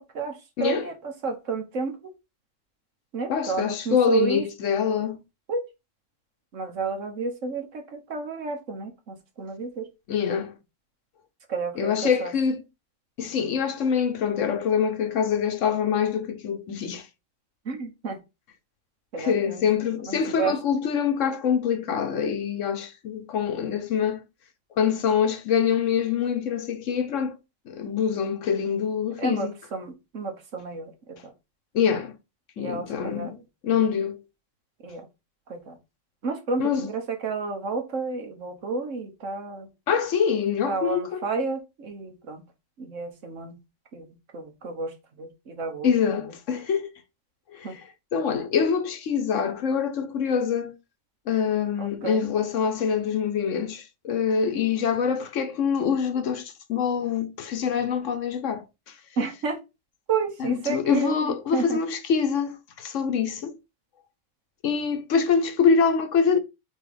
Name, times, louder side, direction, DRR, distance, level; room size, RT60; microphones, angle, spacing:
voice 1, 0.1-2.1 3.1-4.5 5.5-5.6 6.5-9.9 11.5-12.3 17.7-18.2 19.1-19.6 20.1-20.6 29.2-31.3 32.6-33.4 34.8-35.1 35.5-35.8 36.2-39.7 40.7-42.4 42.8-43.6 43.9-45.9 47.6-47.7 51.8-52.2 59.2-59.6 60.1-61.8, right 4 dB, 90° right, 1.7 m, -31 dB
voice 2, 3.3-5.2 10.1-10.5 11.8-12.6 13.2-17.1 19.2-24.2 24.8-27.3 27.7-29.5 31.7-32.1 32.6-33.4 33.6-34.2 36.6-36.9 39.9-41.2 45.8-46.9 47.5-47.7 48.1-50.7 51.3-58.6 60.4-63.6 64.6-66.4, left 7 dB, 80° left, 1.3 m, -25 dB
4.7 x 4.4 x 5.0 m
omnidirectional pair, 1.3 m